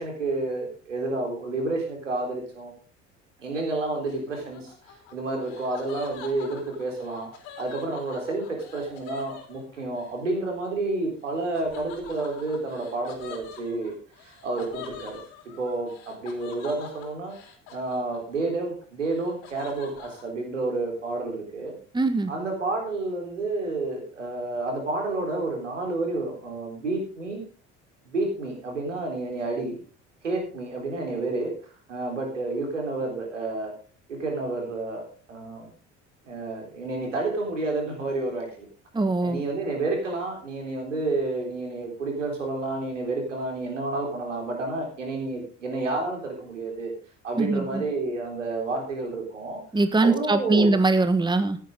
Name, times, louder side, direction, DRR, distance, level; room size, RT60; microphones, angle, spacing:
voice 1, 0.0-2.7 3.4-4.7 5.1-7.3 7.6-13.9 14.2-15.2 15.6-17.3 17.7-21.8 22.3-27.5 28.1-29.8 30.2-31.5 31.9-33.7 34.1-35.7 36.3-38.7 39.2-46.9 47.2-49.6 50.0-50.7, right 2 dB, 85° right, 1 dB, 3.9 m, -30 dB
Laughter, 4.1-10.1 11.5-18.5 18.8-20.2, left 7 dB, 65° left, 3.9 m, -45 dB
voice 2, 21.9-22.3 38.9-39.4 47.4-47.8 49.7-51.6, right 3 dB, 10° right, 10 dB, 1.5 m, -22 dB
15.5 x 10.0 x 3.8 m, 0.39 s
figure-of-eight pair, 55°, 36 cm